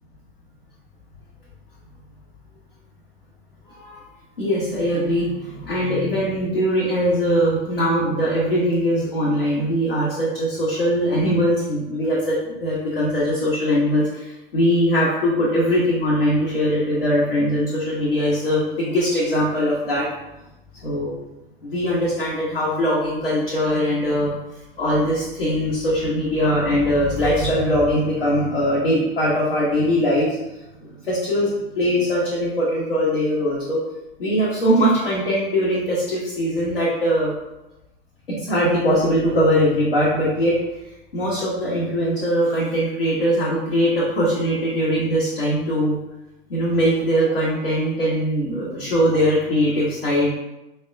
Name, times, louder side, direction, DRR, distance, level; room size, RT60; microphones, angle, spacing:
voice 1, 3.7-4.0 4.4-20.1 20.8-21.2 21.6-24.3 24.8-30.4 30.9-33.8 34.2-37.3 38.3-40.6 41.1-46.0 46.5-50.3, equal, 75° left, -6 dB, 0.8 m, -21 dB
4.2 x 2.1 x 2.3 m, 0.96 s
figure-of-eight pair, 85°, 29 cm